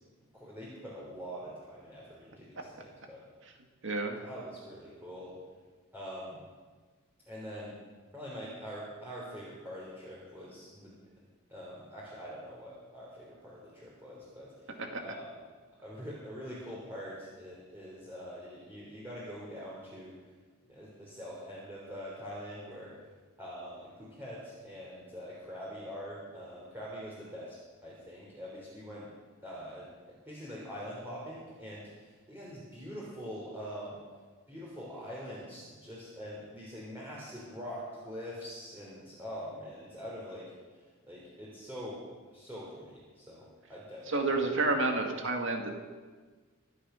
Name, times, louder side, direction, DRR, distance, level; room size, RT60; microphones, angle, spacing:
voice 1, 0.3-3.2 4.2-5.4 5.9-6.4 7.3-7.8 8.1-10.9 11.5-15.3 15.8-20.1 20.7-23.0 23.4-27.6 27.8-29.1 29.4-34.0 34.5-42.0 42.3-44.3, equal, 10° right, -7 dB, 3.5 m, -44 dB
voice 2, 3.8-4.1 14.9-15.1 44.1-45.7, right 3 dB, 60° right, 3 dB, 2.1 m, -30 dB
25.0 x 8.8 x 5.8 m, 1.4 s
head